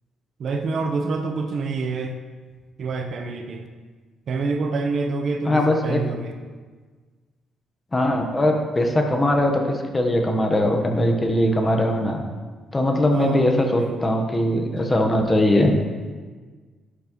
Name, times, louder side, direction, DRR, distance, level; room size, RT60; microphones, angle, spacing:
voice 1, 0.4-2.2 2.8-3.7 4.3-6.4 13.1-14.1, right 4 dB, 60° right, 5 dB, 0.9 m, -27 dB
voice 2, 5.5-6.0 7.9-12.2 12.7-15.7, left 1 dB, 20° left, 3 dB, 1.1 m, -20 dB
11.0 x 6.0 x 3.1 m, 1.4 s
cardioid pair, 90°, 0 cm